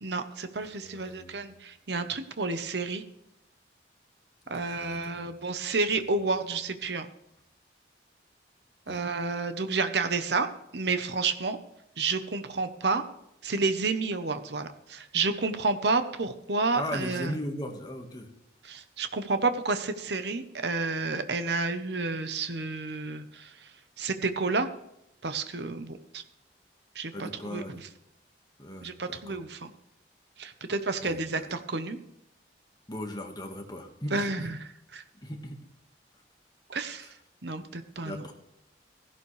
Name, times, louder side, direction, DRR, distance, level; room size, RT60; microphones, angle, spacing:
voice 1, 0.0-3.0 4.5-7.1 8.9-10.5 10.7-11.6 12.0-13.0 13.4-17.3 18.6-23.5 24.0-24.7 25.2-26.2 26.9-27.9 28.8-29.7 30.4-32.0 34.1-34.6 34.9-35.0 36.7-37.1 37.4-38.2, right 3 dB, 65° right, 10 dB, 1.0 m, -30 dB
voice 2, 0.6-1.4 4.5-5.3 8.9-9.0 16.7-18.3 27.1-27.8 28.6-29.4 31.0-31.5 32.9-34.5 35.2-35.6 37.0-37.1 38.0-38.3, left 1 dB, 20° left, 3 dB, 1.6 m, -38 dB
15.5 x 11.5 x 3.3 m, 0.81 s
head